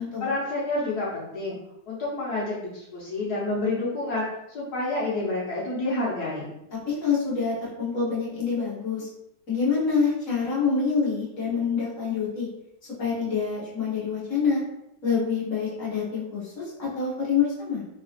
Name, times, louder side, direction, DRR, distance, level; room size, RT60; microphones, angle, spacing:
voice 1, 0.0-1.6 1.9-6.5, left 2 dB, 65° left, -7 dB, 1.3 m, -29 dB
voice 2, 6.7-9.1 9.5-12.5 13.0-14.6 15.0-17.8, left 5 dB, 50° left, -6 dB, 1.5 m, -26 dB
3.9 x 2.8 x 2.4 m, 0.82 s
omnidirectional pair, 1.9 m